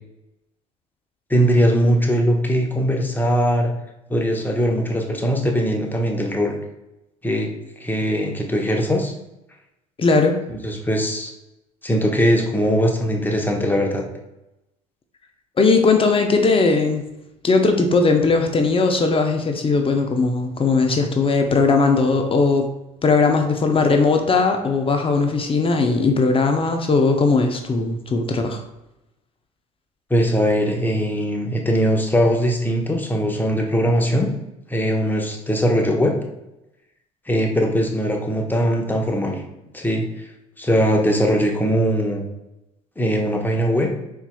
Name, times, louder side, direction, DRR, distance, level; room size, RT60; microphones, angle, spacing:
voice 1, 1.3-3.7 4.1-6.6 7.2-7.5 7.8-9.1 10.5-11.3 11.8-14.0 30.1-34.3 34.7-36.1 37.3-39.4 39.7-40.1 40.6-42.3 43.0-43.9, equal, 10° left, 1 dB, 1.0 m, -20 dB
voice 2, 10.0-10.4 15.6-17.0 17.4-22.7 23.0-28.6, left 4 dB, 30° left, 5 dB, 0.7 m, -18 dB
4.6 x 4.2 x 2.3 m, 0.94 s
hypercardioid pair, 65°, 18 cm